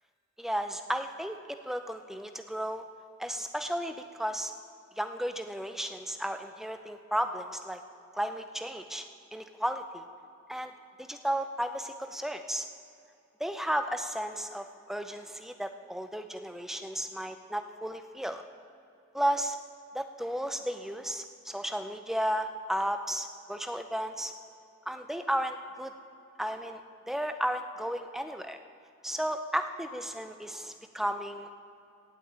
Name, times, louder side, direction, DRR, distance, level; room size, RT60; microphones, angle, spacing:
voice 1, 0.4-1.4 1.7-2.8 3.2-4.5 5.0-7.8 8.1-9.1 9.3-10.0 10.5-10.7 11.0-12.7 13.4-18.4 19.1-19.6 19.9-24.3 24.9-25.9 26.4-26.8 27.1-28.6 29.0-31.5, equal, ahead, 7 dB, 0.5 m, -33 dB
16.5 x 5.9 x 8.6 m, 2.7 s
head